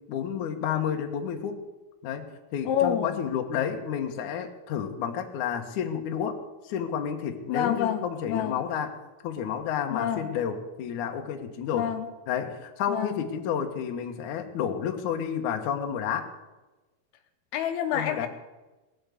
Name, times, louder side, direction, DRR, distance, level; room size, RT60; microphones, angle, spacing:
voice 1, 0.1-1.6 2.0-6.4 6.6-8.9 9.2-11.9 12.3-16.3 17.9-18.3, left 8 dB, 60° left, 4 dB, 2.4 m, -30 dB
voice 2, 2.7-3.2 7.5-8.6 9.9-10.3 11.7-12.1 12.9-13.2 17.5-18.3, left 9 dB, 75° left, 7 dB, 2.8 m, -28 dB
18.5 x 8.7 x 8.3 m, 1.1 s
omnidirectional pair, 4.6 m